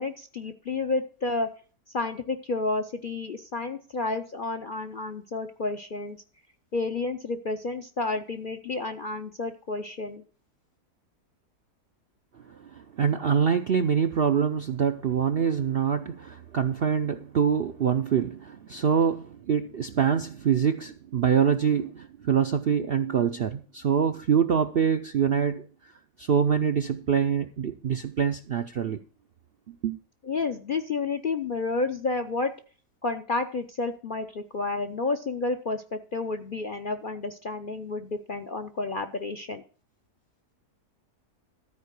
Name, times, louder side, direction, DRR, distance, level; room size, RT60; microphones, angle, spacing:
voice 1, 0.0-1.5 1.9-6.2 6.7-10.2 30.2-32.5 33.0-39.6, left 3 dB, 50° left, 0.6 m, -30 dB
voice 2, 12.5-25.7 26.2-29.0 29.7-30.0, right 7 dB, 60° right, 0.6 m, -25 dB
13.5 x 4.6 x 8.2 m
omnidirectional pair, 1.7 m